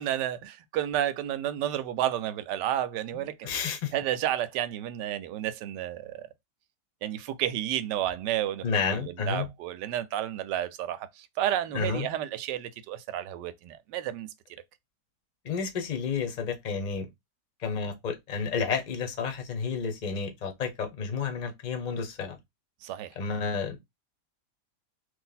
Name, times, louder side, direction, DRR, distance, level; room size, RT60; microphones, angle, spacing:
voice 1, 0.0-3.5 3.9-6.3 7.0-14.3 22.8-23.1, right 12 dB, 85° right, 1.2 m, -31 dB
voice 2, 3.4-3.9 8.6-9.5 11.7-12.1 15.4-17.1 17.6-22.4 23.2-23.8, left 5 dB, 45° left, 0.6 m, -31 dB
3.2 x 2.6 x 4.0 m
omnidirectional pair, 1.8 m